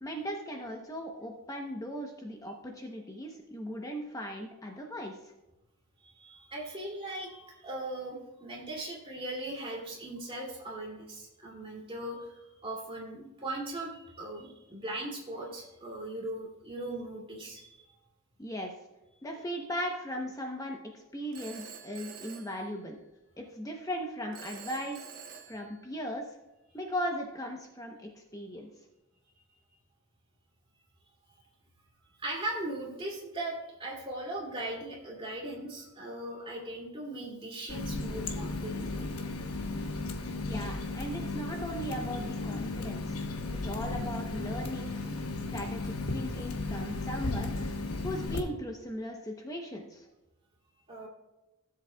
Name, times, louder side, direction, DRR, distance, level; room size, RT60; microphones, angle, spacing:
voice 1, 0.0-5.1 18.4-18.7 19.2-23.0 23.4-25.0 25.5-26.2 26.7-28.7 40.5-43.2 43.6-45.0 45.5-47.5 48.0-50.1, equal, 15° left, 1 dB, 0.8 m, -38 dB
voice 2, 6.0-17.8 32.2-39.1 50.9-51.1, right 1 dB, 25° right, -2 dB, 2.6 m, -39 dB
Telephone, 21.3-23.3 24.3-26.3, right 7 dB, 40° right, 1.2 m, -48 dB
Water tap faucet, 37.7-48.4, left 2 dB, 90° left, 1.1 m, -35 dB
16.5 x 7.6 x 2.3 m, 1.0 s
head